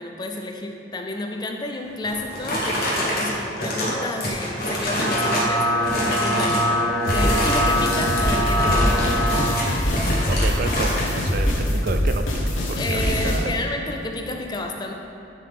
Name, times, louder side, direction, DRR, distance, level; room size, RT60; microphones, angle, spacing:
voice 1, 0.0-2.9 3.1-6.6 7.0-9.6 10.1-10.3 12.7-14.9, left 2 dB, 20° left, 3 dB, 0.4 m, -31 dB
sound 1, 2.0-5.6 5.8-6.7 7.0-11.1, equal, 50° left, 1.3 m, -26 dB
sound 2, 4.7-9.6, equal, 80° right, 1.2 m, -24 dB
sound 3, 7.1-13.5, equal, 80° left, 0.9 m, -24 dB
voice 2, 10.3-13.6, right 4 dB, 50° right, 7 dB, 0.3 m, -31 dB
11.0 x 3.7 x 3.7 m, 2.8 s
head